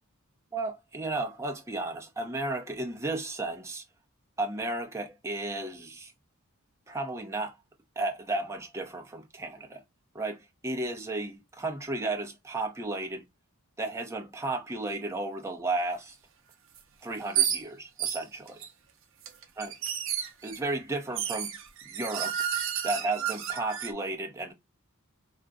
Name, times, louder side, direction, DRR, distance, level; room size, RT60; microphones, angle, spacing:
voice 1, 0.5-3.8 4.4-6.1 6.9-7.6 8.0-9.8 10.1-13.2 13.8-16.2 17.0-18.6 19.6-19.7 20.4-21.5 21.9-22.4 22.8-24.5, right 2 dB, 15° right, 0.6 m, -33 dB
sound 1, 16.8-16.9 17.4-17.6 18.0-18.7 19.2-20.6 21.2-23.9, right 9 dB, 60° right, 0.5 m, -31 dB
3.6 x 2.1 x 2.5 m
head